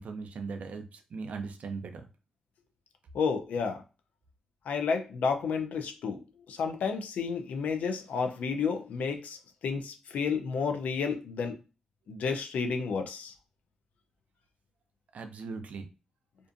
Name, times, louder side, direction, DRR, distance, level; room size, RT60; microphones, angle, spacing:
voice 1, 0.0-2.1 15.1-15.9, right 4 dB, 75° right, 6 dB, 0.5 m, -39 dB
voice 2, 3.1-3.8 4.7-6.2 6.5-9.4 9.6-11.6 12.1-13.3, left 5 dB, 90° left, 5 dB, 0.4 m, -31 dB
2.5 x 2.4 x 2.5 m, 0.31 s
cardioid pair, 60°, 2 cm